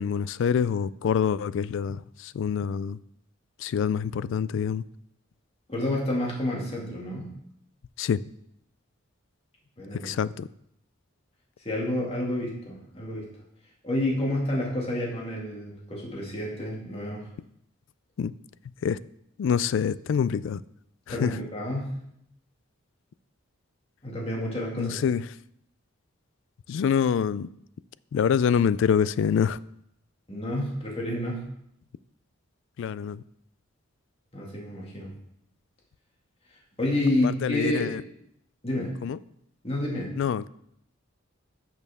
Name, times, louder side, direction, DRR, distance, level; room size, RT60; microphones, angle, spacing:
voice 1, 0.0-3.0 3.6-4.8 8.0-8.2 10.0-10.5 18.2-18.3 18.8-19.0 19.4-20.6 21.1-21.3 24.8-25.2 26.7-27.5 28.1-29.6 32.8-33.2 37.2-38.0 39.0-39.2 40.2-40.5, left 7 dB, 65° left, 0.3 m, -26 dB
voice 2, 5.7-7.3 9.8-10.1 11.6-13.3 13.8-17.3 21.1-22.0 24.0-25.0 30.3-31.5 34.3-35.1 36.8-38.0 38.6-39.0 39.6-40.1, left 1 dB, 30° left, 2.2 m, -29 dB
10.5 x 6.4 x 3.6 m
head